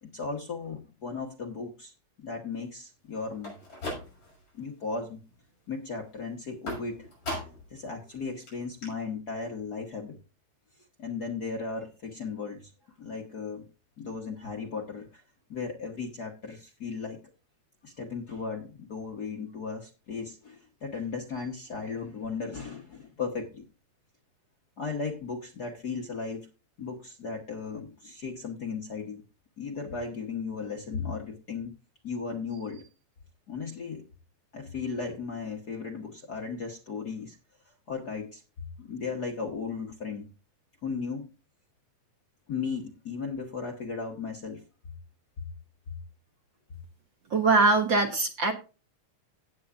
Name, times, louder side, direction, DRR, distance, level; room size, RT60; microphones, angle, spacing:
voice 1, 0.0-1.9 2.2-3.6 4.5-5.2 5.7-7.1 7.7-10.2 11.0-12.7 13.0-13.7 14.0-15.2 15.5-17.2 17.8-23.7 24.8-26.5 26.8-29.2 29.6-31.7 32.0-32.9 33.5-34.0 34.5-37.4 37.7-38.4 38.8-40.3 40.8-41.3 42.5-44.6 45.9-46.0, left 5 dB, 55° left, 1 dB, 1.1 m, -36 dB
sound 1, 3.3-4.5 4.9-5.4 6.7-7.8 8.1-8.2 8.5-8.6 8.8-8.9, left 1 dB, 40° left, 6.8 m, -38 dB
voice 2, 47.3-48.5, right 3 dB, 55° right, 3 dB, 1.4 m, -22 dB
17.0 x 8.0 x 2.5 m, 0.32 s
omnidirectional pair, 3.4 m